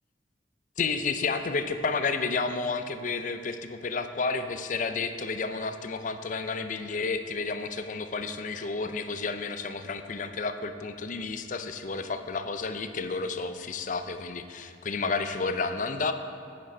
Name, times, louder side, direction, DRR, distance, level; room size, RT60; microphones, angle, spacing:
voice 1, 0.8-16.1, left 4 dB, 45° left, 9 dB, 0.5 m, -31 dB
8.9 x 8.6 x 3.9 m, 2.6 s
head